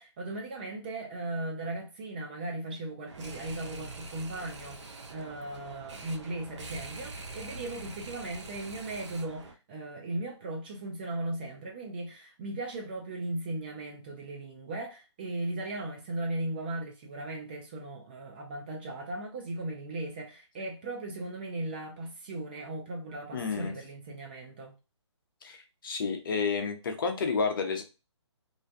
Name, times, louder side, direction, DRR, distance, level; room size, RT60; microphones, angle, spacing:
voice 1, 0.0-24.7, right 2 dB, 20° right, 0.4 m, -37 dB
sound 1, 3.1-9.5, right 3 dB, 70° right, 0.6 m, -44 dB
voice 2, 23.3-23.7 25.4-27.8, left 5 dB, 45° left, 0.6 m, -30 dB
2.5 x 2.2 x 2.6 m
figure-of-eight pair, 145°, 15 cm